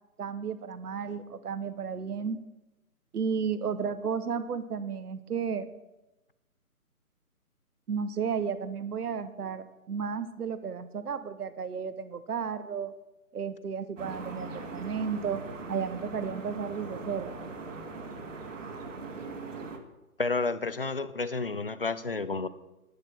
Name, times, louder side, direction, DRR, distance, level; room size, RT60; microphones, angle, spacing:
voice 1, 0.2-2.4 3.1-5.7 7.9-12.9 13.3-15.4 15.7-17.3, right 6 dB, 80° right, 12 dB, 0.9 m, -33 dB
sound 1, 14.0-19.8, right 3 dB, 55° right, 1.7 m, -40 dB
voice 2, 20.2-22.5, left 3 dB, 40° left, 14 dB, 0.4 m, -30 dB
10.5 x 9.7 x 4.4 m, 1.0 s
hypercardioid pair, 160°, 45 cm